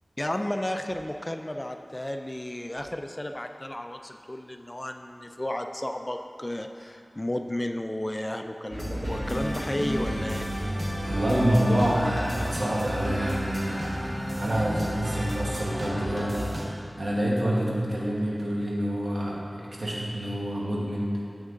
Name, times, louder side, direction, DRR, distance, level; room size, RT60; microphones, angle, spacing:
voice 1, 0.2-10.5, left 1 dB, 25° left, 6 dB, 0.3 m, -33 dB
sound 1, 8.7-16.6, equal, 40° right, 1.3 m, -32 dB
sound 2, 9.2-15.6, equal, 15° right, 1.0 m, -43 dB
voice 2, 11.1-16.5 17.0-21.1, equal, 70° right, -5 dB, 1.4 m, -27 dB
7.3 x 6.0 x 3.8 m, 2.6 s
wide cardioid pair, 55°, 0 cm